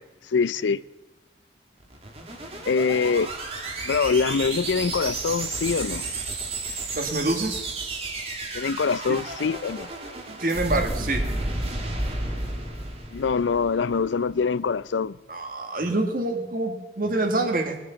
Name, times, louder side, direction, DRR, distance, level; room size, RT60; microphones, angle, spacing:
voice 1, 0.3-0.8 2.7-3.3 3.8-6.1 8.5-9.9 13.1-15.2, left 5 dB, 80° left, 0.5 m, -24 dB
sound 1, 1.8-14.2, right 2 dB, 30° right, 1.9 m, -32 dB
voice 2, 7.0-7.6 10.4-11.2 15.3-17.8, right 2 dB, 50° right, 2.0 m, -26 dB
22.5 x 8.1 x 7.0 m
head